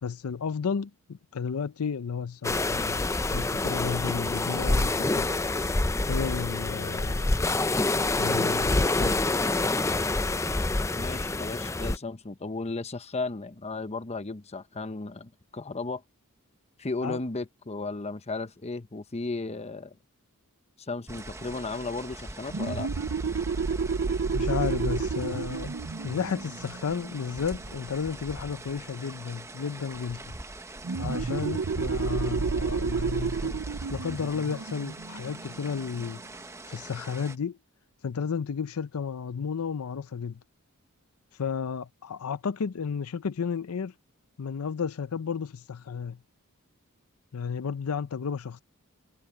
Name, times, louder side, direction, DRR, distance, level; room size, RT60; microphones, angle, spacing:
voice 1, 0.0-5.5 6.1-7.4 8.2-9.1 17.0-17.2 24.3-25.7 26.0-30.4 31.0-33.6 33.9-36.2 36.7-37.6 38.0-40.4 41.3-43.9 44.4-46.2 47.3-48.6, left 6 dB, 75° left, 0.5 m, -33 dB
sound 1, 2.4-12.0, left 2 dB, 15° left, 0.5 m, -26 dB
voice 2, 11.0-16.0 16.8-20.0 20.8-22.9, left 3 dB, 30° left, 0.9 m, -35 dB
sound 2, 21.1-37.4, right 2 dB, 15° right, 1.1 m, -44 dB
sound 3, 22.5-27.8 30.8-36.1, right 4 dB, 60° right, 0.6 m, -30 dB
head